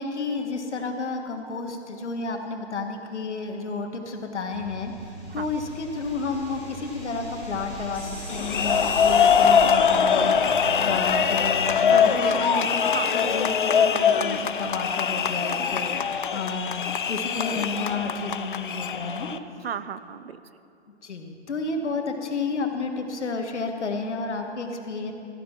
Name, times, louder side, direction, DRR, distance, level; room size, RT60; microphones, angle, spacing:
voice 1, 0.0-4.9 5.3-10.5 10.8-12.8 13.1-19.4 21.0-25.1, left 4 dB, 85° left, 4 dB, 1.8 m, -31 dB
sound 1, 4.5-11.8, right 2 dB, 30° right, 2.0 m, -39 dB
sound 2, 4.8-10.7, left 1 dB, 5° right, 1.5 m, -43 dB
sound 3, 8.3-19.4, left 7 dB, 50° left, 0.5 m, -22 dB
voice 2, 11.9-13.5 19.6-20.4, right 8 dB, 60° right, 14 dB, 0.6 m, -35 dB
14.0 x 10.5 x 5.8 m, 2.8 s
hypercardioid pair, 170°, 34 cm